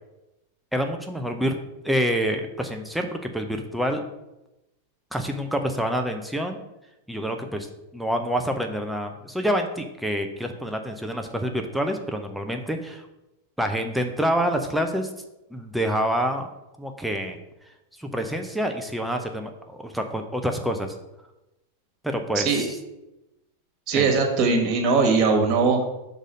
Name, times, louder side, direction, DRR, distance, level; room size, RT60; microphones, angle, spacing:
voice 1, 0.7-1.5 1.8-4.0 5.1-6.6 7.1-7.7 7.9-13.1 13.6-15.1 15.5-16.5 16.8-17.4 18.0-20.9 22.0-22.7 23.9-24.1, equal, ahead, 4 dB, 0.7 m, -27 dB
voice 2, 22.3-22.7 23.9-25.8, right 4 dB, 35° right, 2 dB, 1.7 m, -20 dB
6.4 x 4.0 x 6.3 m, 0.93 s
figure-of-eight pair, 90°, 0 cm